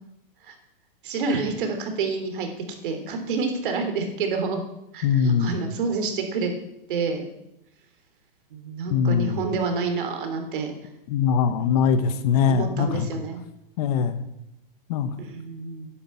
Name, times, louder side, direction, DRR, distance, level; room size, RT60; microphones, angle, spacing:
voice 1, 1.0-2.5 2.8-4.6 4.9-6.5 6.9-7.3 8.5-10.7 12.5-13.4 15.2-15.9, right 4 dB, 60° right, 5 dB, 3.4 m, -28 dB
voice 2, 5.0-5.6 8.9-9.5 11.1-13.1 13.8-14.2 14.9-15.1, left 7 dB, 40° left, 11 dB, 1.2 m, -22 dB
10.5 x 10.0 x 7.6 m, 0.84 s
hypercardioid pair, 150°, 29 cm